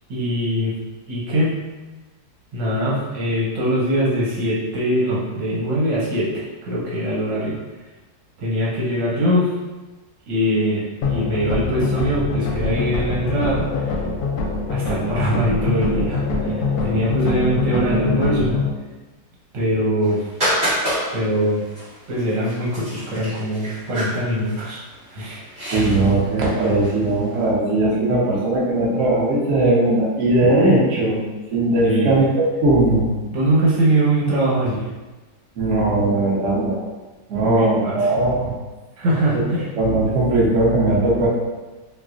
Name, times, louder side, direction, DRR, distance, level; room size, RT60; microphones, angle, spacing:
voice 1, 0.1-0.8 1.1-1.6 2.5-7.6 8.4-9.5 10.3-14.0 14.7-18.6 19.5-20.3 21.1-21.6 22.1-24.8 25.1-25.5 31.8-32.2 33.3-34.9 37.4-38.1 39.0-39.7, right 1 dB, 80° right, -6 dB, 1.6 m, -22 dB
sound 1, 11.0-18.7, left 3 dB, 70° left, 0.9 m, -24 dB
sound 2, 20.0-27.3, equal, 30° right, 1.4 m, -29 dB
voice 2, 25.7-31.2 31.5-33.1 35.6-36.8 37.3-38.5 39.7-41.3, right 2 dB, 55° right, -6 dB, 1.0 m, -18 dB
4.6 x 2.1 x 2.4 m, 1.2 s
omnidirectional pair, 2.0 m